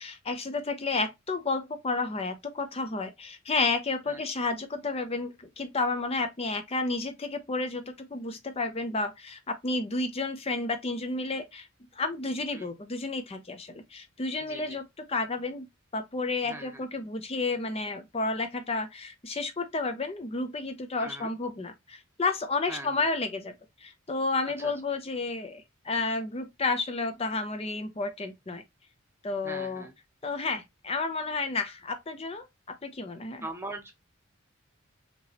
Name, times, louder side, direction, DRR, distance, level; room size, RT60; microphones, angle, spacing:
voice 1, 0.0-11.7 12.0-15.7 15.9-23.5 23.8-28.6 29.2-29.9 30.2-32.5 32.8-33.5, left 3 dB, 30° left, 0.6 m, -31 dB
voice 2, 14.4-14.8 16.4-16.9 21.0-21.3 22.7-22.9 24.6-24.7 29.4-29.9 33.4-33.9, right 2 dB, 10° right, 0.8 m, -41 dB
4.5 x 2.9 x 2.9 m
head